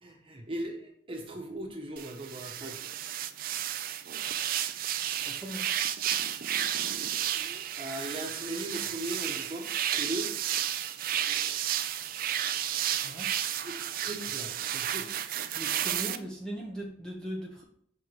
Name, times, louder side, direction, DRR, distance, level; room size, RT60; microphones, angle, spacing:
voice 1, 0.0-2.8 7.8-10.3 13.6-13.7 14.0-15.2, right 1 dB, 25° right, 1 dB, 1.2 m, -38 dB
sound 1, 2.0-16.2, right 10 dB, 45° right, 0.4 m, -32 dB
voice 2, 5.3-5.7 13.0-13.3 15.5-17.6, right 1 dB, 5° left, -2 dB, 0.9 m, -39 dB
5.8 x 4.7 x 4.6 m, 0.64 s
head